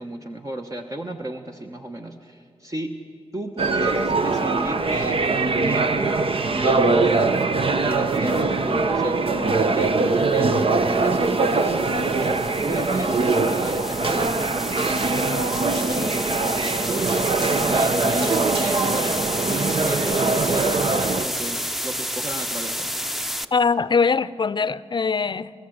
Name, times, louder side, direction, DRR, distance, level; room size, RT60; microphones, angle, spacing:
voice 1, 0.0-2.9 3.3-5.2 5.6-6.2 6.5-7.3 7.7-11.8 12.2-17.1 17.4-19.1 19.4-22.9, right 1 dB, 30° right, 1.2 m, -33 dB
sound 1, 3.6-21.2, right 3 dB, 60° right, 1.0 m, -22 dB
sound 2, 8.1-8.4 10.6-23.5, equal, ahead, 0.8 m, -30 dB
voice 2, 23.5-25.5, left 5 dB, 45° left, 0.6 m, -22 dB
30.0 x 14.0 x 7.9 m
cardioid pair, 65°, 11 cm